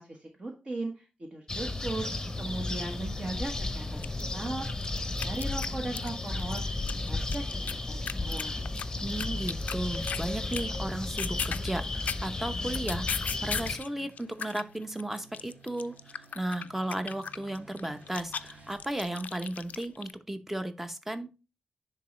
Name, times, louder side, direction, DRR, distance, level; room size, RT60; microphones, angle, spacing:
voice 1, 0.0-2.0 2.4-6.8 7.1-8.6, right 2 dB, 40° right, 1 dB, 1.3 m, -38 dB
sound 1, 1.5-13.8, left 2 dB, 20° left, 0.8 m, -34 dB
sound 2, 4.0-6.1 6.4-10.3 10.5-10.8 11.0-13.9 14.2-20.1, left 7 dB, 75° left, 0.4 m, -37 dB
voice 2, 9.0-13.1 13.4-21.3, right 1 dB, 10° right, 9 dB, 0.8 m, -35 dB
sound 3, 10.0-18.8, right 3 dB, 70° right, 2.0 m, -60 dB
10.0 x 3.9 x 3.2 m, 0.31 s
wide cardioid pair, 85°, 3 cm